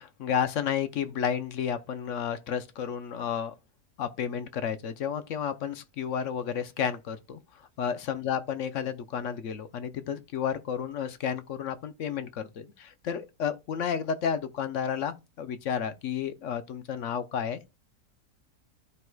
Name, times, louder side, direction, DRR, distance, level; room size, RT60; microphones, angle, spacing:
voice 1, 0.0-3.5 4.0-7.4 7.8-17.7, left 8 dB, 65° left, 0.9 m, -31 dB
13.5 x 4.6 x 2.3 m
omnidirectional pair, 1.6 m